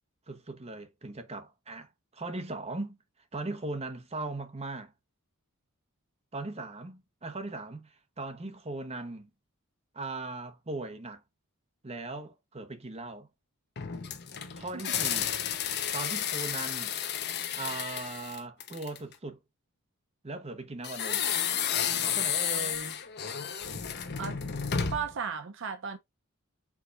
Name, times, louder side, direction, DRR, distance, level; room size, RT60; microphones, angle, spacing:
voice 1, 0.3-3.0 3.3-4.9 6.3-9.3 9.9-11.2 11.8-13.3 14.5-15.4 15.9-16.9 17.6-19.4 20.2-21.3 22.0-23.0, right 2 dB, 30° right, 0.9 m, -39 dB
sound 1, 13.8-19.1 20.8-25.2, left 8 dB, 50° left, 0.8 m, -32 dB
voice 2, 24.9-26.0, right 6 dB, 60° right, 0.6 m, -34 dB
4.8 x 3.8 x 2.4 m
head